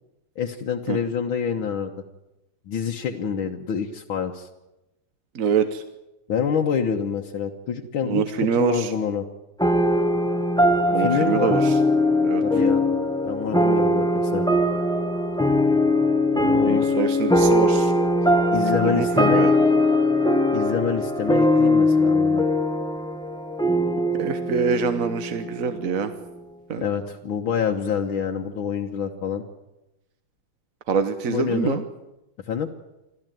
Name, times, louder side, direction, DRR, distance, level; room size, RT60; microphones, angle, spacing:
voice 1, 0.4-1.9 2.7-4.5 6.3-9.3 11.0-11.6 12.4-12.8 13.2-14.5 16.3-16.9 18.2-19.5 20.5-22.5 26.8-29.4 31.3-31.8 32.5-32.7, left 7 dB, 70° left, 2 dB, 2.0 m, -27 dB
voice 2, 5.3-5.8 8.1-8.9 10.9-11.8 12.2-12.4 16.6-17.9 18.8-19.5 24.2-26.1 26.7-26.8 30.9-31.8, right 6 dB, 50° right, 9 dB, 1.2 m, -25 dB
sound 1, 9.6-26.4, left 1 dB, 5° left, 1.1 m, -21 dB
26.0 x 14.5 x 9.2 m, 0.95 s
omnidirectional pair, 2.3 m